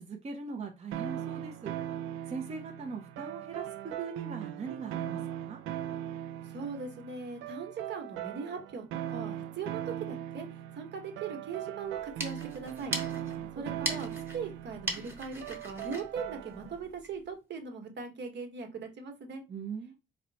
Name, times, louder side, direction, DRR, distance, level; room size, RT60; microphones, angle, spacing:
voice 1, 0.0-1.7 2.3-5.6 13.4-13.6 19.5-20.0, right 5 dB, 35° right, 0.6 m, -40 dB
sound 1, 0.9-16.8, right 11 dB, 85° right, 0.4 m, -39 dB
voice 2, 6.5-9.8 10.1-10.5 10.7-13.0 13.5-19.4, right 5 dB, 60° right, 1.2 m, -40 dB
sound 2, 11.9-17.2, right 1 dB, 10° right, 1.1 m, -40 dB
4.2 x 2.1 x 4.0 m
cardioid pair, 90°, 20 cm